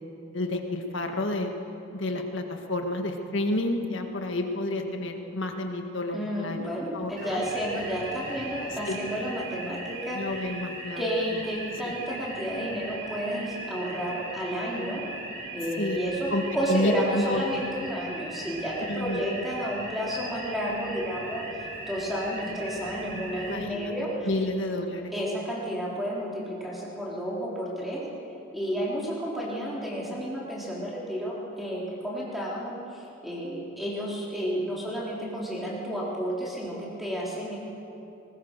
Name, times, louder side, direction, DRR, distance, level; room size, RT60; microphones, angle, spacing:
voice 1, 0.3-1.5 1.9-7.5 8.9-9.0 10.1-11.0 11.8-11.9 15.8-16.0 16.3-16.4 16.7-17.5 18.9-19.3 23.5-23.9 24.2-25.1, left 1 dB, 60° left, 4 dB, 1.9 m, -30 dB
voice 2, 6.1-10.5 11.0-15.0 15.5-24.3 25.1-28.0 28.5-37.6, equal, ahead, -6 dB, 3.8 m, -31 dB
sound 1, 7.2-23.6, right 2 dB, 60° right, 4.2 m, -39 dB
20.0 x 19.5 x 6.8 m, 2.8 s
head